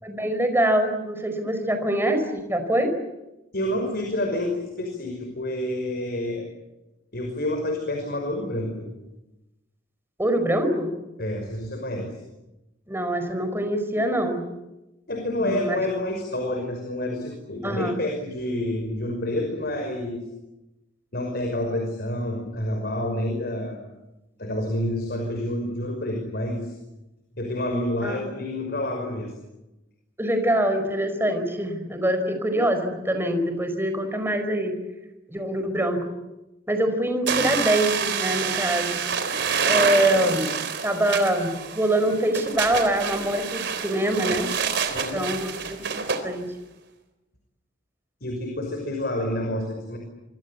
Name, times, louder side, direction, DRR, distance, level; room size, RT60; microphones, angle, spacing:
voice 1, 0.0-2.9 10.2-10.9 12.9-14.4 15.4-15.8 17.6-18.0 28.0-28.2 30.2-34.8 35.3-36.1 36.7-39.0 39.6-40.5 40.8-44.5 45.1-46.5, right 1 dB, 10° right, 7 dB, 4.9 m, -24 dB
voice 2, 3.5-6.5 7.1-8.9 11.2-12.2 15.1-20.2 21.1-23.9 24.4-26.7 27.4-29.3 44.9-45.3 48.2-50.0, left 1 dB, 55° left, 3 dB, 5.8 m, -28 dB
sound 1, 37.3-46.2, right 6 dB, 60° right, 3.9 m, -27 dB
26.5 x 26.0 x 8.4 m, 0.98 s
head